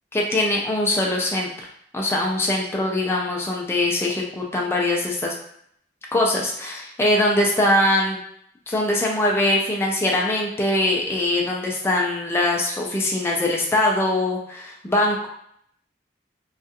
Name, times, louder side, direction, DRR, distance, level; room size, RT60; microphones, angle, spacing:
voice 1, 0.1-1.7 1.9-5.3 6.1-8.2 8.7-15.3, left 1 dB, 15° left, -2 dB, 0.3 m, -22 dB
2.3 x 2.3 x 2.7 m, 0.68 s
head